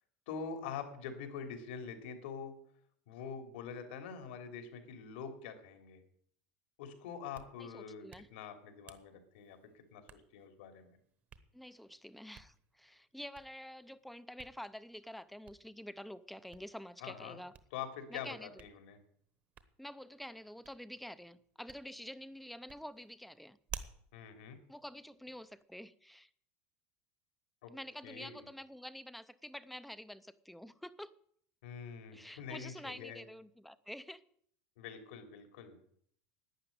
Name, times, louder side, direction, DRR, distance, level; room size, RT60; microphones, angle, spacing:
voice 1, 0.3-2.5 3.1-6.0 6.8-8.1 8.3-11.0 17.0-17.4 17.7-19.0 24.1-24.6 27.6-27.7 28.0-28.5 31.6-33.2 34.8-35.8, left 6 dB, 80° left, 7 dB, 3.1 m, -45 dB
Hands, 7.1-25.6, right 7 dB, 30° right, 1.0 m, -57 dB
voice 2, 7.6-8.3 11.5-17.5 18.1-18.6 19.8-23.6 24.7-26.3 27.7-31.1 32.1-34.2, equal, ahead, 15 dB, 0.5 m, -48 dB
12.0 x 9.7 x 9.5 m, 0.65 s
supercardioid pair, 170°, 6 cm